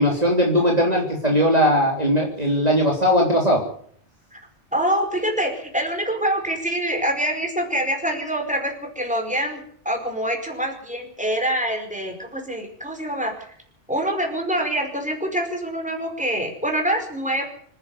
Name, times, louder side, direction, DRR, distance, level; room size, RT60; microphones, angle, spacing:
voice 1, 0.0-3.6, equal, 35° right, -1 dB, 3.5 m, -19 dB
voice 2, 4.7-13.4 13.9-17.4, right 1 dB, 5° right, 3 dB, 5.0 m, -25 dB
26.0 x 10.5 x 9.8 m, 0.63 s
omnidirectional pair, 1.2 m